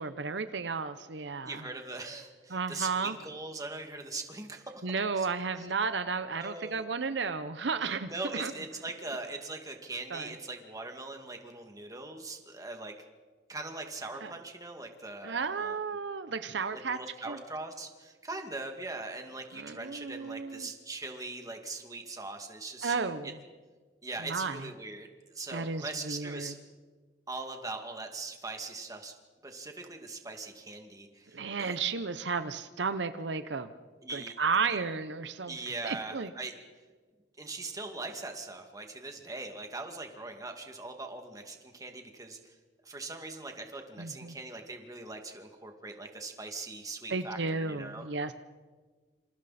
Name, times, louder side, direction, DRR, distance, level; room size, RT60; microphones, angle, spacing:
voice 1, 0.0-1.6 2.5-3.1 4.8-8.5 10.1-10.3 14.2-14.3 15.2-17.0 17.3-17.4 19.5-20.7 22.8-23.4 24.2-24.7 25.5-26.5 31.3-33.7 34.1-35.6 35.8-36.3 44.0-44.4 47.1-48.3, right 4 dB, 80° right, 11 dB, 0.9 m, -33 dB
voice 2, 1.4-4.9 5.2-5.3 5.6-5.7 6.4-6.9 8.1-12.9 13.5-15.8 16.7-23.0 23.2-23.3 24.0-25.1 25.3-26.5 27.3-29.1 29.4-31.8 34.0-34.3 35.4-36.5 37.4-42.5 42.8-48.0, right 3 dB, 20° right, 4 dB, 2.3 m, -41 dB
27.5 x 27.5 x 4.3 m, 1.4 s
head